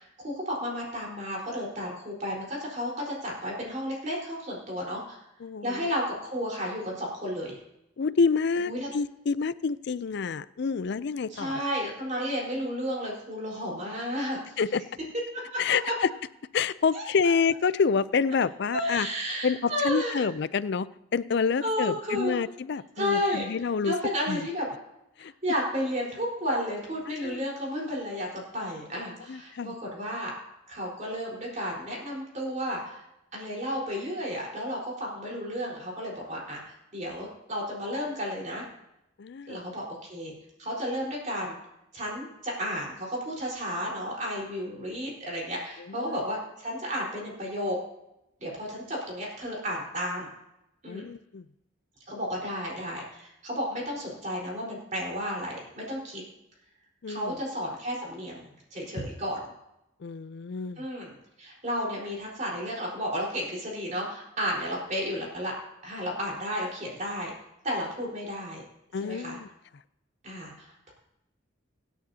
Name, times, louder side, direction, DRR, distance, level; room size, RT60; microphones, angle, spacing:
voice 1, 0.0-5.2 5.6-7.6 8.6-8.9 11.3-14.6 15.5-15.6 16.9-17.3 18.7-20.2 21.6-22.4 23.0-23.5 23.8-24.7 25.2-30.3 30.7-33.0 33.3-36.6 36.9-38.6 39.5-40.3 40.6-41.6 41.9-47.8 48.4-50.3 50.8-51.1 52.1-56.2 57.1-58.4 58.7-59.4 60.8-65.5 65.8-67.3 67.6-68.6 69.0-69.4 70.2-70.9, equal, 40° right, -3 dB, 4.3 m, -32 dB
voice 2, 5.4-5.9 8.0-11.6 14.6-14.8 15.6-16.1 16.5-19.1 19.4-23.9 24.3-24.5 25.2-25.3 27.1-27.4 29.3-29.7 39.2-39.7 45.8-46.2 50.9-51.5 57.0-57.4 60.0-60.8 68.9-69.5, left 5 dB, 60° left, 16 dB, 0.4 m, -28 dB
25.0 x 9.3 x 2.8 m, 0.89 s
head